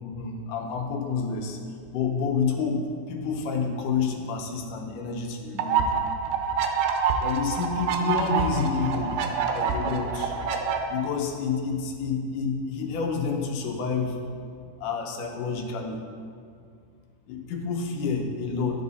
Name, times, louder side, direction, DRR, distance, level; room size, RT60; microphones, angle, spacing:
voice 1, 0.0-1.6 1.9-2.8 3.1-5.9 7.2-9.2 9.5-10.3 10.9-14.2 14.8-16.0 17.3-18.8, left 5 dB, 85° left, 2 dB, 2.4 m, -29 dB
sound 1, 5.6-10.8, right 6 dB, 85° right, 2.3 m, -26 dB
12.5 x 5.3 x 4.1 m, 2.3 s
omnidirectional pair, 3.6 m